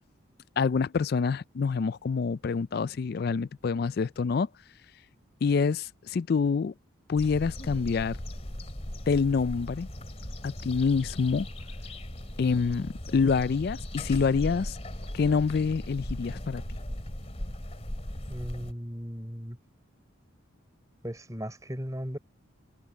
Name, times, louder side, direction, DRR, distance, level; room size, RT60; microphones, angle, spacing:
voice 1, 0.6-4.5 5.4-6.7 7.1-8.2 9.1-9.9 10.4-11.5 12.4-14.8 15.1-16.6, left 5 dB, 50° left, 0.3 m, -26 dB
sound 1, 7.2-18.7, left 1 dB, 30° left, 2.5 m, -38 dB
voice 2, 18.3-19.6 21.0-22.2, equal, 15° right, 4.0 m, -37 dB
open air
head